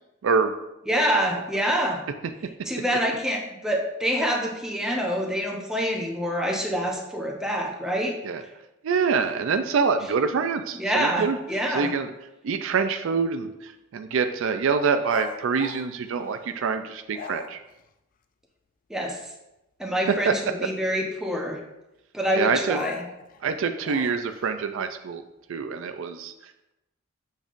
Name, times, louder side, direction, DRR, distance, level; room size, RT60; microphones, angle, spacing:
voice 1, 0.2-0.5 1.3-1.4 8.2-8.4 8.8-11.4 11.7-12.1 12.4-17.6 20.1-20.3 20.6-20.7 22.3-22.8 23.4-25.2 25.5-26.7, right 5 dB, 65° right, 8 dB, 0.4 m, -25 dB
voice 2, 0.9-2.0 2.7-8.2 10.7-11.9 18.9-19.2 19.8-21.6 22.1-22.9, equal, 5° right, -1 dB, 0.8 m, -26 dB
sound 1, 15.1-16.7 17.1-17.8 22.7-24.5, left 5 dB, 40° left, 0.4 m, -39 dB
7.1 x 5.3 x 2.5 m, 0.92 s
head